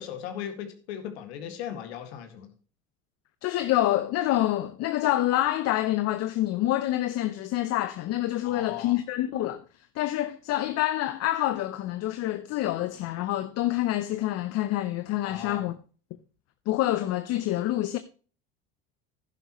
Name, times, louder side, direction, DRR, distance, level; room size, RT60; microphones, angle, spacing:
voice 1, 0.0-2.5 8.4-9.0 15.2-15.7, left 9 dB, 80° left, 2.1 m, -37 dB
voice 2, 3.4-9.6 10.0-15.7 16.7-18.0, left 14 dB, 50° left, 0.8 m, -27 dB
11.0 x 11.0 x 3.1 m
hypercardioid pair, 80°, 31 cm